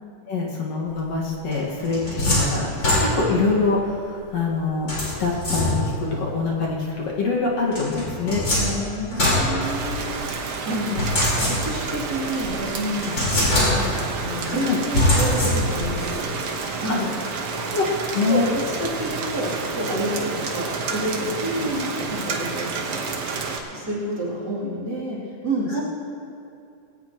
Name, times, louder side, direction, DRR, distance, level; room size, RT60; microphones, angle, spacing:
voice 1, 0.3-5.8 6.2-8.4 14.5-14.8 16.9-17.0 17.5-17.8 18.1-18.5 21.4-21.8 25.7-25.8, left 3 dB, 60° left, -3 dB, 2.8 m, -24 dB
sound 1, 1.5-3.5 4.9-6.1 7.7-10.2 11.0-12.0 12.4-12.5 13.0-14.1 14.9-15.9, left 1 dB, 40° left, 4.9 m, -23 dB
voice 2, 8.5-14.0 14.2-16.3 16.8-17.2 18.3-21.4 21.8-23.2 23.7-25.8, right 1 dB, 35° right, -6 dB, 3.3 m, -29 dB
Rain, 9.6-23.6, right 4 dB, 60° right, 1.8 m, -30 dB
20.0 x 17.5 x 3.0 m, 2.7 s
omnidirectional pair, 3.4 m